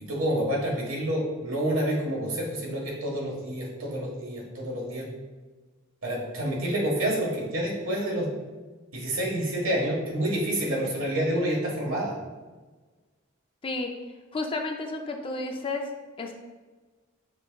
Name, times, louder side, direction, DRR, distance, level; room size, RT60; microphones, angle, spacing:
voice 1, 0.1-5.1 6.0-8.3 8.9-12.1, right 1 dB, 85° right, -3 dB, 1.3 m, -28 dB
voice 2, 14.3-15.9 16.2-16.4, left 2 dB, 25° left, 3 dB, 0.4 m, -31 dB
6.0 x 3.6 x 2.2 m, 1.3 s
head